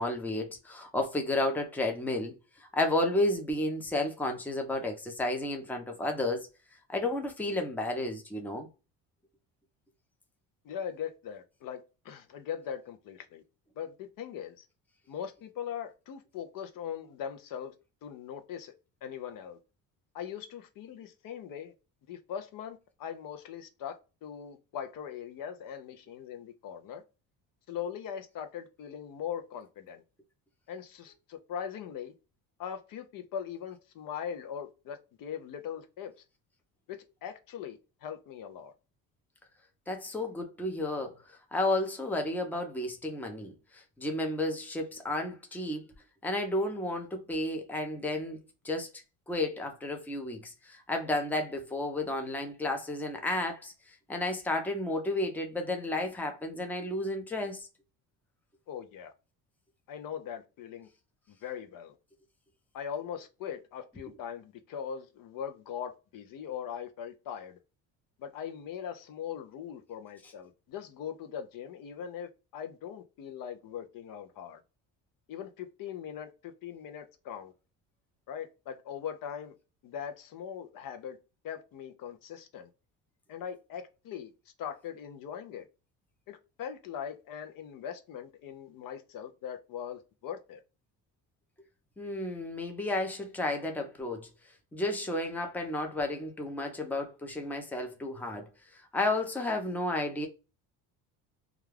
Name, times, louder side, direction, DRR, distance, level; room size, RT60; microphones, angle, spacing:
voice 1, 0.0-2.4 2.6-6.5 6.9-8.7 39.9-41.1 41.5-45.9 46.2-53.7 54.1-57.7 92.0-94.3 94.7-98.5 98.9-100.3, left 2 dB, 5° left, 0.6 m, -32 dB
voice 2, 10.6-13.4 13.8-14.6 15.1-17.7 18.0-18.7 19.0-19.6 20.1-21.7 22.1-27.0 27.7-30.0 30.7-32.1 32.6-36.1 36.9-38.7 58.7-59.1 59.9-60.9 61.3-62.0 62.7-67.6 68.2-74.6 75.3-77.5 78.3-79.5 79.8-81.2 81.4-82.7 83.3-84.3 84.6-85.7 86.3-90.6, left 8 dB, 60° left, 0.6 m, -40 dB
2.4 x 2.3 x 3.1 m
cardioid pair, 110°, 38 cm